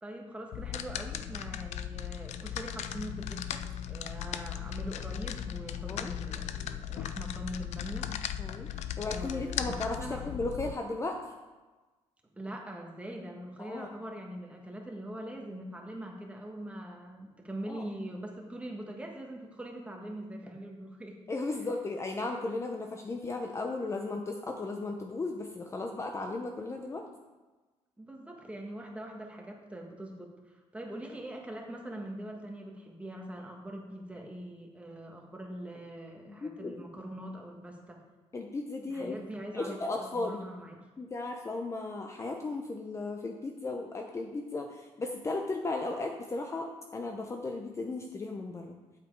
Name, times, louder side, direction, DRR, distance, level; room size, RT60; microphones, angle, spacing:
voice 1, 0.0-8.1 8.7-9.7 10.0-10.3 12.3-21.2 28.0-38.0 38.9-40.8, right 1 dB, 10° right, 0 dB, 1.5 m, -43 dB
sound 1, 0.5-10.7, left 10 dB, 75° left, 0.5 m, -37 dB
voice 2, 8.4-8.7 9.0-11.2 13.6-13.9 17.7-17.8 21.3-27.0 36.3-36.8 38.3-39.2 39.5-40.4 41.0-48.8, left 3 dB, 25° left, 3 dB, 0.7 m, -35 dB
8.1 x 7.6 x 4.7 m, 1.2 s
cardioid pair, 115°, 12 cm